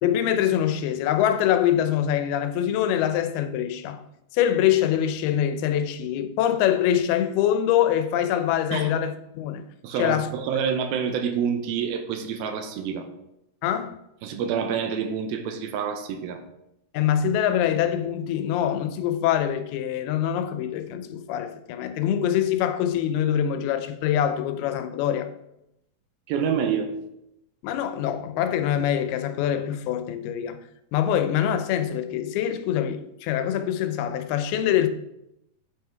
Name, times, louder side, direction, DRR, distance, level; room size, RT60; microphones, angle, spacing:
voice 1, 0.0-4.0 4.3-9.7 10.0-10.3 13.6-14.0 16.9-25.3 27.6-30.6 30.9-34.9, left 10 dB, 90° left, 2.6 m, -24 dB
voice 2, 9.8-13.1 14.2-16.4 26.3-26.9, right 7 dB, 85° right, 2.6 m, -27 dB
9.0 x 5.6 x 4.5 m
omnidirectional pair, 4.4 m